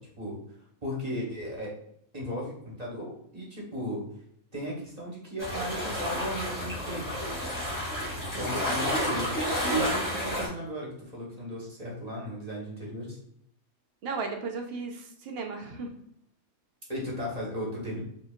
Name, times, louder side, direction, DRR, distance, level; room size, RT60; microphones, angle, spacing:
voice 1, 0.8-1.7 2.1-4.0 4.5-7.1 8.4-9.3 9.7-13.2 16.9-18.0, equal, 30° right, -4 dB, 1.3 m, -35 dB
sound 1, 5.4-10.5, equal, 15° left, 1.5 m, -30 dB
voice 2, 8.3-8.8 14.0-15.9, right 4 dB, 60° right, 4 dB, 0.7 m, -36 dB
4.9 x 3.0 x 2.4 m, 0.70 s
omnidirectional pair, 1.5 m